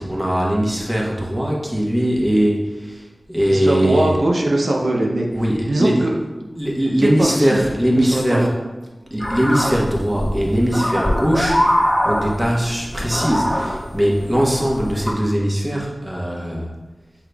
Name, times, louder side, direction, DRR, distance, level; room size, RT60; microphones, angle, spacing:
voice 1, 0.0-4.2 5.3-6.1 6.6-8.5 9.1-16.7, equal, 20° right, -3 dB, 1.1 m, -20 dB
voice 2, 3.5-5.3 5.6-6.2 7.0-7.6 7.9-8.5, right 1 dB, 85° right, -1 dB, 0.5 m, -20 dB
sound 1, 9.2-15.1, equal, 20° left, 1.1 m, -22 dB
6.3 x 3.7 x 2.3 m, 1.1 s
wide cardioid pair, 60°, 0 cm